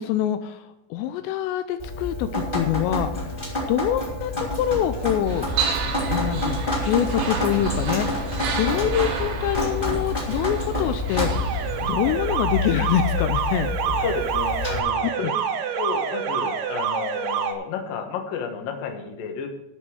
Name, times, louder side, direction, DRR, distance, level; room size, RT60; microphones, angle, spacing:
voice 1, 0.0-3.3 3.7-5.5 6.1-11.5 11.8-13.7 15.1-15.3, left 10 dB, 90° left, 9 dB, 2.5 m, -25 dB
Drip, 1.8-14.8, left 2 dB, 15° left, 2.1 m, -28 dB
sound 1, 5.3-11.9, right 4 dB, 70° right, 4.3 m, -30 dB
Alarm, 11.0-17.5, right 7 dB, 90° right, 1.9 m, -27 dB
voice 2, 13.8-15.4 15.8-19.5, left 6 dB, 65° left, 4 dB, 2.4 m, -31 dB
13.0 x 5.4 x 7.7 m, 0.91 s
omnidirectional pair, 5.6 m